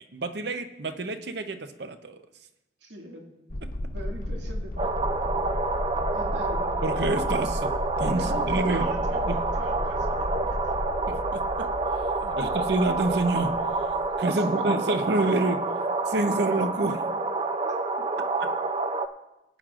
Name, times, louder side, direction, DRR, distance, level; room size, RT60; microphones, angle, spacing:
voice 1, 0.0-2.2 3.6-3.7 6.8-8.9 9.3-9.4 11.1-11.7 12.2-13.6 14.2-15.6 16.1-17.1, right 2 dB, 65° right, 8 dB, 0.8 m, -28 dB
voice 2, 2.8-3.3 3.6-3.7 3.9-5.7 6.1-7.3 8.2-10.8 12.3-12.7 14.3-14.7 17.7-18.1, right 1 dB, 80° right, 0 dB, 2.0 m, -42 dB
sound 1, 3.5-14.1, left 1 dB, 50° left, 0.8 m, -34 dB
sound 2, 4.8-19.1, right 3 dB, 30° right, 0.5 m, -28 dB
20.0 x 9.1 x 2.5 m, 0.94 s
head